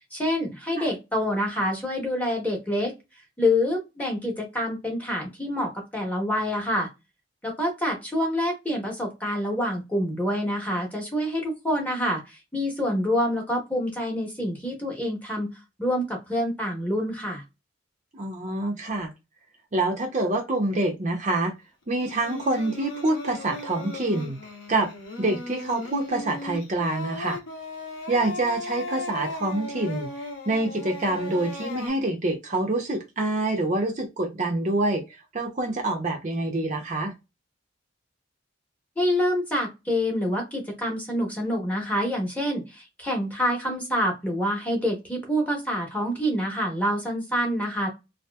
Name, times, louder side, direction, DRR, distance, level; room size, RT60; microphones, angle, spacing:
voice 1, 0.1-2.9 3.4-6.9 7.4-15.5 15.8-17.4 39.0-47.9, left 1 dB, 10° left, 0.9 m, -27 dB
voice 2, 18.1-19.1 19.7-21.5 21.9-24.4 24.7-24.9 25.2-27.4 28.1-37.1, right 2 dB, 35° right, 0.5 m, -26 dB
Singing, 22.0-31.9, left 2 dB, 70° left, 0.8 m, -36 dB
2.8 x 2.3 x 2.2 m
head